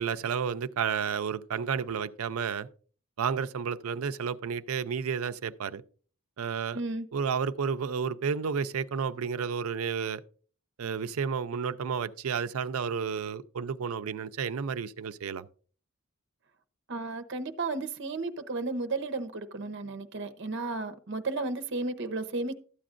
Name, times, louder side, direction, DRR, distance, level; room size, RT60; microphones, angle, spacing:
voice 1, 0.0-2.7 3.2-5.8 6.4-6.8 7.1-10.2 10.8-15.5, right 6 dB, 90° right, 0.5 m, -31 dB
voice 2, 6.7-7.1 16.9-22.5, right 3 dB, 55° right, 0.8 m, -33 dB
12.5 x 8.5 x 2.5 m
head